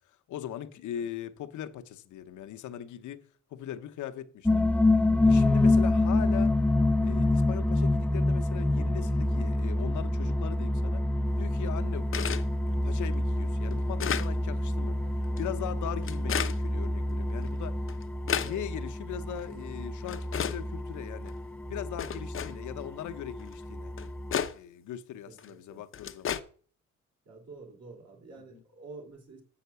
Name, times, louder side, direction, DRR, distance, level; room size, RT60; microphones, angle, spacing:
voice 1, 0.1-3.2 3.5-4.6 5.2-6.5 7.0-11.0 11.4-15.0 15.4-17.8 18.4-21.4 21.7-23.9 24.5-26.4 28.5-28.6, left 10 dB, 75° left, 0.9 m, -40 dB
sound 1, 4.5-24.4, left 2 dB, 5° left, 0.4 m, -27 dB
sound 2, 12.1-12.5 13.1-13.2 13.7-14.3 15.2-15.4 16.0-16.6 17.4-17.5 17.9-18.5 19.4-19.5 20.1-20.6 21.3-21.4 22.0-22.5 23.5-23.6 24.0-24.5 25.4-25.5 25.9-26.4, left 8 dB, 45° left, 0.7 m, -32 dB
voice 2, 14.8-15.7 18.4-18.7 25.3-25.8 27.2-29.4, right 3 dB, 55° right, 3.3 m, -49 dB
7.2 x 5.8 x 6.8 m
cardioid pair, 90°, 30 cm